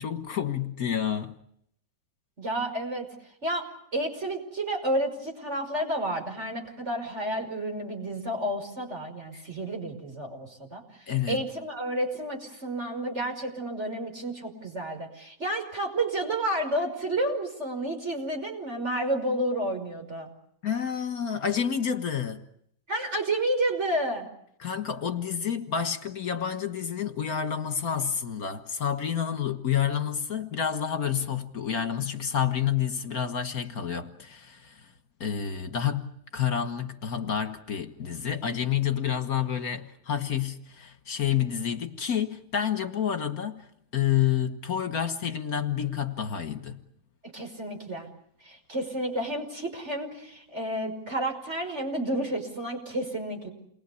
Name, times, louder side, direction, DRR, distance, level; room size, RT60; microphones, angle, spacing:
voice 1, 0.0-1.4 9.3-9.4 11.1-11.4 20.6-22.4 24.6-34.9 35.2-43.6 43.9-46.8, left 8 dB, 65° left, 2.0 m, -29 dB
voice 2, 2.4-3.1 3.4-20.3 22.9-24.3 47.2-48.1 48.4-53.5, right 1 dB, 45° right, 5.9 m, -31 dB
29.0 x 22.5 x 8.4 m
omnidirectional pair, 1.7 m